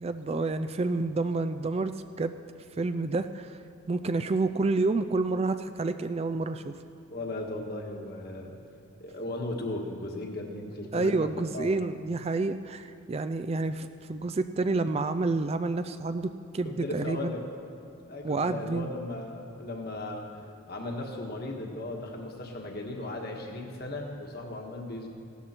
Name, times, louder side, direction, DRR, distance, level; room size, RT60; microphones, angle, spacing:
voice 1, 0.0-2.3 2.8-3.6 3.9-6.7 10.9-17.3 18.2-18.9, right 3 dB, 30° right, 10 dB, 0.3 m, -29 dB
voice 2, 7.1-8.6 9.0-11.7 16.6-17.4 18.1-25.1, left 2 dB, 45° left, 1 dB, 1.5 m, -36 dB
16.5 x 13.0 x 4.4 m, 2.7 s
head